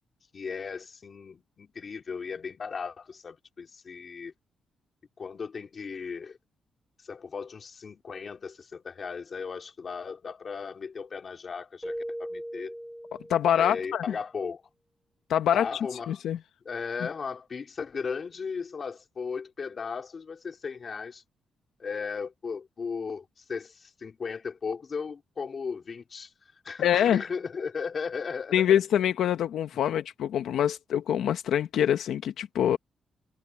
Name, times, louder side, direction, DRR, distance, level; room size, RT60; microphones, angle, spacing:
voice 1, 0.3-4.3 5.2-6.4 7.0-12.7 13.5-14.6 15.5-16.2 16.6-21.2 21.8-26.3 26.6-28.7, left 5 dB, 35° left, 2.9 m, -36 dB
Keyboard (musical), 11.8-13.8, equal, ahead, 0.9 m, -38 dB
voice 2, 13.3-14.0 15.3-15.7 16.1-16.4 26.8-27.2 28.5-32.8, left 10 dB, 80° left, 0.8 m, -25 dB
wide cardioid pair, 160°, 0 cm